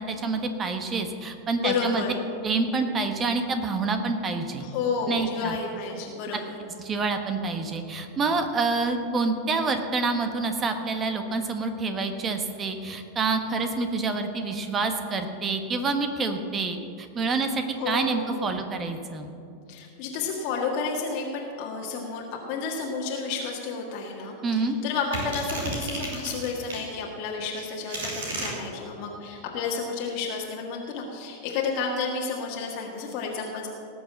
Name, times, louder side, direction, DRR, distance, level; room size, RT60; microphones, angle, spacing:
voice 1, 0.0-2.0 2.4-4.6 5.1-5.6 6.3-6.4 6.8-19.3 24.4-24.8, right 3 dB, 25° right, 6 dB, 1.3 m, -27 dB
voice 2, 1.6-2.2 4.6-6.6 17.8-18.4 19.7-33.7, left 4 dB, 45° left, -1 dB, 1.8 m, -31 dB
sound 1, 25.1-26.9 27.5-28.5, right 2 dB, 60° right, 3.9 m, -33 dB
18.5 x 7.0 x 7.4 m, 2.5 s
figure-of-eight pair, 90°, 0 cm